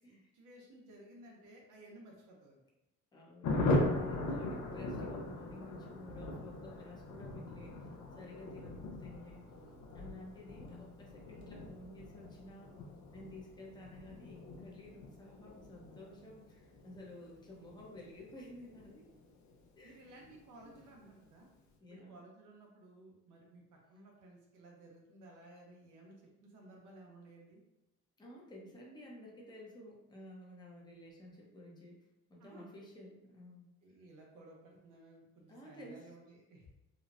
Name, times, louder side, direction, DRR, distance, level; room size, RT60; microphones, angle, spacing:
voice 1, 0.0-2.6 19.8-21.5 21.9-27.6 32.4-32.6 33.8-36.7, right 1 dB, 80° right, -1 dB, 0.8 m, -57 dB
voice 2, 3.1-9.4 9.9-12.8 13.1-19.1 19.8-20.3 20.6-20.8 21.8-22.2 28.2-32.0 32.3-33.7 35.5-36.1, left 1 dB, 15° left, -2 dB, 0.6 m, -52 dB
Thunder, 3.4-19.5 19.8-19.9 20.2-20.3 20.6-21.0, left 2 dB, 70° left, 0.6 m, -39 dB
2.9 x 2.0 x 2.4 m, 0.94 s
cardioid pair, 90°, 30 cm